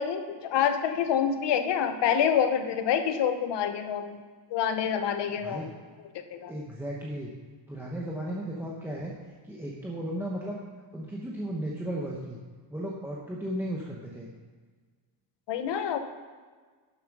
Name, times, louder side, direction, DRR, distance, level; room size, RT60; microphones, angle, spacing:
voice 1, 0.0-4.2 4.5-5.6 6.3-6.5 15.5-16.0, left 8 dB, 60° left, 8 dB, 1.0 m, -27 dB
voice 2, 5.3-5.7 6.5-7.3 7.7-9.1 9.4-10.6 10.9-12.4 12.7-14.3, right 1 dB, 5° right, -3 dB, 0.9 m, -35 dB
10.5 x 6.9 x 6.0 m, 1.5 s
cardioid pair, 165°, 46 cm